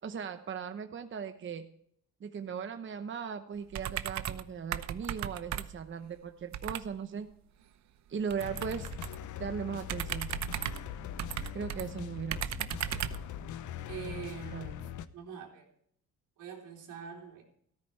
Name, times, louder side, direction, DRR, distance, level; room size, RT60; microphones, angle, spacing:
voice 1, 0.0-1.7 2.2-7.3 8.1-8.9 9.4-10.3 11.5-12.7 14.5-14.7, right 6 dB, 40° right, 8 dB, 0.9 m, -38 dB
sound 1, 3.7-4.5 4.7-5.9 6.5-6.9 8.3-9.2 9.8-11.8 12.3-13.3, right 11 dB, 65° right, 0.8 m, -36 dB
sound 2, 8.4-15.1, left 10 dB, 75° left, 0.8 m, -42 dB
voice 2, 13.9-14.8 15.1-15.7 16.4-17.4, right 7 dB, 85° right, 0 dB, 3.8 m, -44 dB
14.0 x 13.0 x 3.3 m, 0.67 s
cardioid pair, 90°, 30 cm